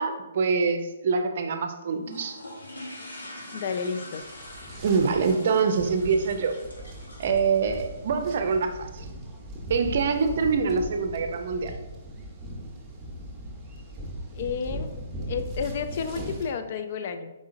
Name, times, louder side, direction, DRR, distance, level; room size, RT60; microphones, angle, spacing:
voice 1, 0.0-2.4 4.8-6.5 7.2-9.1 9.7-11.7, right 5 dB, 55° right, 6 dB, 0.5 m, -25 dB
sound 1, 2.0-8.6, left 1 dB, 85° left, 1.2 m, -44 dB
voice 2, 3.5-4.2 14.3-14.9 15.3-17.3, left 6 dB, 50° left, 8 dB, 0.4 m, -31 dB
sound 2, 4.1-16.5, right 1 dB, 15° right, 1.0 m, -39 dB
4.9 x 3.7 x 2.6 m, 1.0 s
figure-of-eight pair, 135°, 0 cm